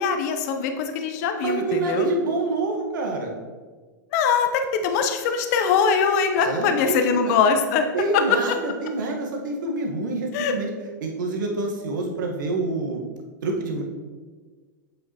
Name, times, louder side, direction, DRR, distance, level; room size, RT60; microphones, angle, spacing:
voice 1, 0.0-2.1 4.1-7.9 8.1-8.4 10.3-10.5, left 6 dB, 55° left, 6 dB, 0.7 m, -22 dB
voice 2, 1.4-3.3 6.3-7.3 7.9-10.7 11.0-13.0 13.4-13.8, right 3 dB, 75° right, 1 dB, 1.3 m, -27 dB
7.8 x 5.6 x 2.9 m, 1.4 s
hypercardioid pair, 110°, 10 cm